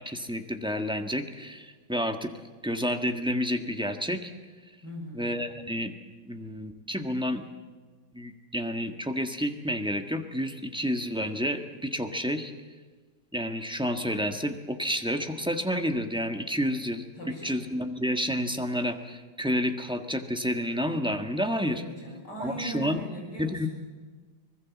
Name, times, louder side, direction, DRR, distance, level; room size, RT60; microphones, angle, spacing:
voice 1, 0.0-2.3 2.6-4.3 5.1-5.9 6.2-7.4 8.1-12.5 13.3-17.0 17.4-21.8 22.4-23.0 23.4-23.7, equal, 5° right, 5 dB, 1.2 m, -30 dB
voice 2, 4.8-5.3 17.2-17.7 21.7-23.7, right 1 dB, 55° left, 0 dB, 7.1 m, -39 dB
24.5 x 20.5 x 7.3 m, 1.4 s
omnidirectional pair, 2.2 m